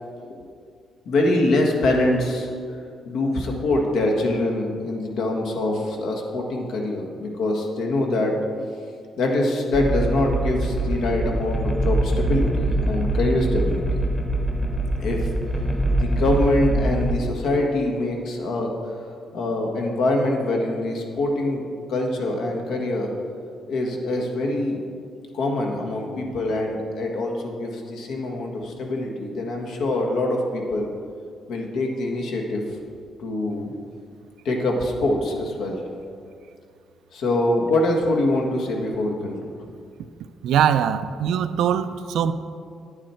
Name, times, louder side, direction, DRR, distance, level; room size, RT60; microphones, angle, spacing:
voice 1, 1.0-2.5 3.0-8.4 9.2-14.0 15.0-15.3 16.0-18.7 19.3-21.6 21.9-23.1 23.7-24.8 25.3-30.9 31.5-32.6 33.2-33.7 34.4-35.8 37.1-39.3, left 2 dB, 80° left, 1 dB, 1.5 m, -24 dB
sound 1, 9.7-17.1, right 1 dB, 15° left, 1.0 m, -23 dB
voice 2, 40.4-42.3, right 9 dB, 85° right, 11 dB, 0.4 m, -21 dB
10.5 x 8.9 x 4.4 m, 2.3 s
cardioid pair, 150°, 0 cm